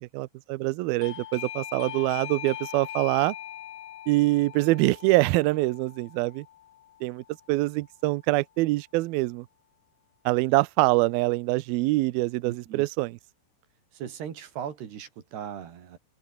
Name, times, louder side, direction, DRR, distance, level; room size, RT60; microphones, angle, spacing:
voice 1, 0.1-3.4 4.1-6.5 7.0-9.5 10.3-13.1, right 20 dB, 85° right, 2.1 m, -24 dB
Doorbell, 1.0-7.5, left 12 dB, 65° left, 3.0 m, -41 dB
voice 2, 12.4-12.9 13.9-16.0, right 9 dB, 65° right, 4.7 m, -38 dB
open air
omnidirectional pair, 5.2 m